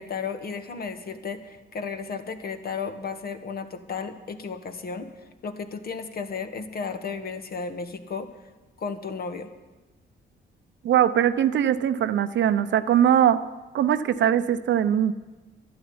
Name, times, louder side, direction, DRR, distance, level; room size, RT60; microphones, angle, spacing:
voice 1, 0.0-8.3 8.8-9.5, left 5 dB, 50° left, 8 dB, 1.4 m, -34 dB
voice 2, 10.8-13.4 13.7-15.1, right 10 dB, 65° right, 12 dB, 0.8 m, -21 dB
11.5 x 11.0 x 9.6 m, 1.2 s
cardioid pair, 90°, 20 cm